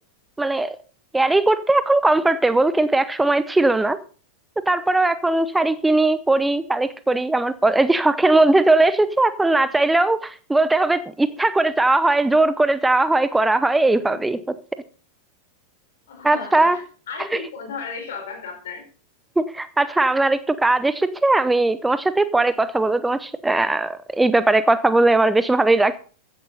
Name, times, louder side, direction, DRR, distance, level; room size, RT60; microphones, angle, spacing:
voice 1, 0.4-0.8 1.1-4.0 4.7-14.4 16.2-16.8 17.3-17.4 19.4-26.0, right 2 dB, 5° right, 14 dB, 0.8 m, -19 dB
voice 2, 13.8-14.2 16.1-18.8, left 5 dB, 60° left, 4 dB, 5.4 m, -35 dB
15.5 x 10.5 x 4.0 m, 0.40 s
figure-of-eight pair, 90°, 0 cm